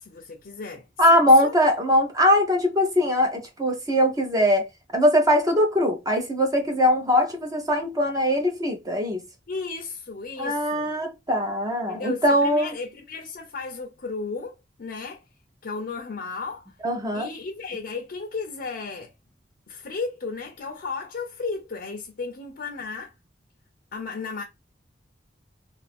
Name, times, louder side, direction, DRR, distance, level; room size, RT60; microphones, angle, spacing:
voice 1, 0.0-1.5 9.5-10.9 11.9-15.2 15.6-16.7 17.1-19.1 19.7-23.1 23.9-24.4, left 4 dB, 55° left, 0.6 m, -34 dB
voice 2, 1.0-4.7 4.9-9.2 10.4-12.7 16.8-17.3, equal, 20° right, 0.7 m, -21 dB
2.5 x 2.4 x 3.3 m
head